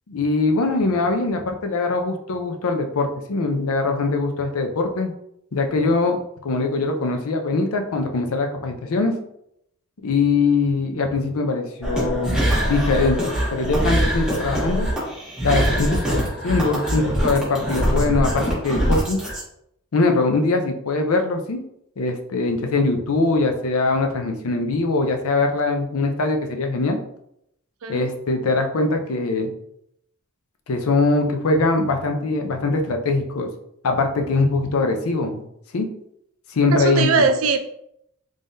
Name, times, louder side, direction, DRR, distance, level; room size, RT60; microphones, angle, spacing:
voice 1, 0.1-5.1 5.5-6.2 6.4-9.1 10.0-14.9 15.4-19.2 19.9-21.6 22.0-27.0 27.9-29.5 30.7-33.5 33.8-35.4 35.7-35.9 36.5-37.2, left 3 dB, 80° left, 4 dB, 0.5 m, -22 dB
sound 1, 11.8-19.4, equal, 5° right, 1.0 m, -23 dB
voice 2, 36.7-37.6, right 4 dB, 70° right, 7 dB, 0.4 m, -20 dB
3.6 x 3.3 x 2.6 m, 0.76 s
head